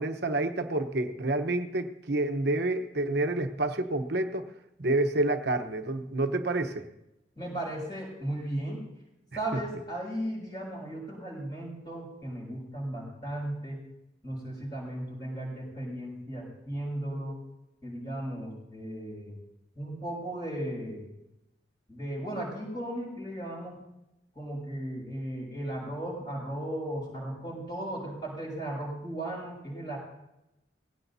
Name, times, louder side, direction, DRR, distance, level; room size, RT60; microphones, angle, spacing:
voice 1, 0.0-4.5 4.8-6.9, right 2 dB, 60° right, 6 dB, 1.0 m, -28 dB
voice 2, 7.4-8.8 9.3-13.8 14.2-17.4 17.8-19.4 19.8-21.1 21.9-23.8 24.3-30.0, right 1 dB, 25° left, -9 dB, 6.0 m, -36 dB
19.5 x 16.5 x 2.8 m, 0.89 s
head